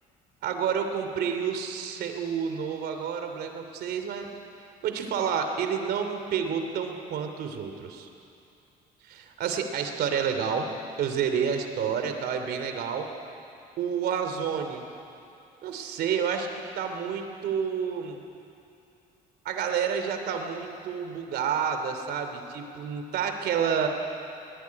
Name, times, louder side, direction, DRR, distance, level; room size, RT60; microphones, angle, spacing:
voice 1, 0.4-4.3 4.8-8.1 9.1-10.7 11.0-13.1 13.8-14.8 15.6-18.2 19.4-23.9, right 7 dB, 70° right, 6 dB, 3.1 m, -29 dB
22.5 x 20.5 x 9.6 m, 2.7 s
cardioid pair, 110°, 17 cm